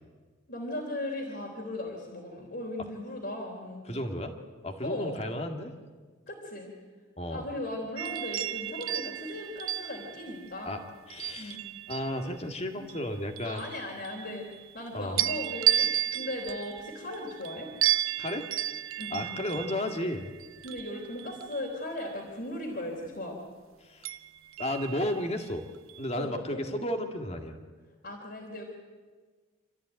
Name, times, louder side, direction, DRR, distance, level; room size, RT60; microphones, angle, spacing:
voice 1, 0.5-3.8 4.8-5.2 6.3-6.7 7.3-10.8 11.4-11.6 13.4-14.4 14.7-17.7 19.0-19.3 20.6-23.4 26.2-26.6 28.0-28.6, left 1 dB, 50° left, -3 dB, 3.7 m, -37 dB
voice 2, 3.9-4.3 4.6-5.7 7.2-7.5 10.7-10.8 11.1-11.6 11.9-13.6 14.9-15.2 18.2-18.5 19.1-20.3 23.8-24.1 24.6-25.6 26.0-27.6, left 1 dB, 30° left, 5 dB, 2.1 m, -33 dB
sound 1, 8.0-12.3 12.9-14.8 15.2-22.1 24.0-25.4 25.9-26.2, right 12 dB, 85° right, 0.7 m, -33 dB
27.5 x 14.5 x 9.2 m, 1.4 s
head